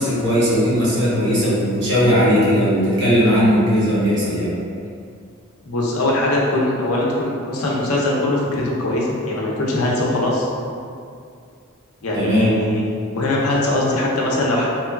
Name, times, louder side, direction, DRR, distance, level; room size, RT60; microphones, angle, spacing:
voice 1, 0.0-4.5 12.1-12.5, equal, 55° right, -9 dB, 0.9 m, -17 dB
voice 2, 5.6-10.5 12.0-12.8 13.1-14.7, left 1 dB, 90° left, -3 dB, 0.5 m, -21 dB
3.0 x 2.2 x 2.3 m, 2.3 s
head